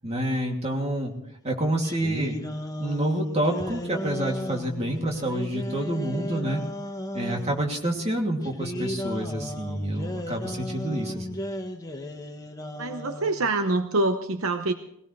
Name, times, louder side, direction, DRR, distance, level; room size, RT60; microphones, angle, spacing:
voice 1, 0.0-1.1 1.4-2.4 2.8-6.6 7.1-11.4, right 1 dB, 30° right, 0 dB, 2.7 m, -28 dB
sound 1, 1.8-7.6 8.4-13.5, left 1 dB, 15° left, 1.3 m, -35 dB
voice 2, 12.8-14.7, right 2 dB, 65° right, 7 dB, 0.8 m, -25 dB
20.0 x 18.0 x 3.3 m, 0.76 s
head